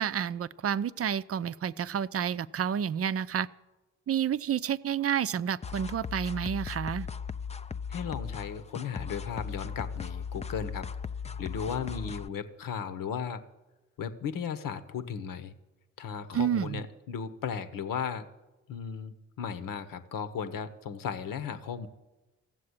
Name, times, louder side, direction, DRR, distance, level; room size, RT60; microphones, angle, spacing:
voice 1, 0.0-3.5 4.1-7.1 16.3-16.8, right 8 dB, 40° right, 16 dB, 0.6 m, -30 dB
sound 1, 5.6-12.3, left 6 dB, 20° left, 0.5 m, -38 dB
voice 2, 7.9-10.9 11.4-13.4 14.0-15.5 16.0-18.3 18.7-21.9, left 7 dB, 70° left, 11 dB, 1.1 m, -36 dB
14.5 x 7.6 x 9.7 m, 1.1 s
hypercardioid pair, 40°, 35 cm